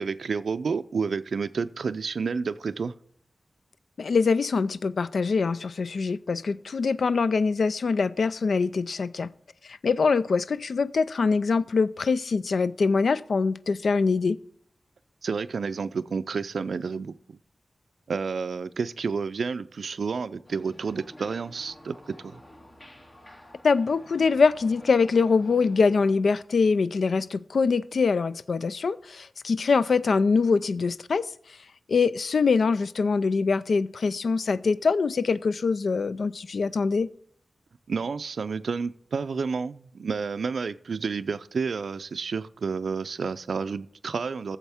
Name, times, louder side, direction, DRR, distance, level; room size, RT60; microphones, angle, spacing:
voice 1, 0.0-2.9 15.2-17.4 18.1-22.4 37.9-44.6, right 5 dB, 85° right, 0.4 m, -30 dB
voice 2, 4.0-9.3 9.6-14.4 23.6-31.3 31.9-37.1, left 4 dB, 85° left, 0.3 m, -24 dB
sound 1, 20.4-26.1, left 1 dB, 40° left, 1.8 m, -49 dB
14.5 x 7.1 x 3.5 m
wide cardioid pair, 75°, 0 cm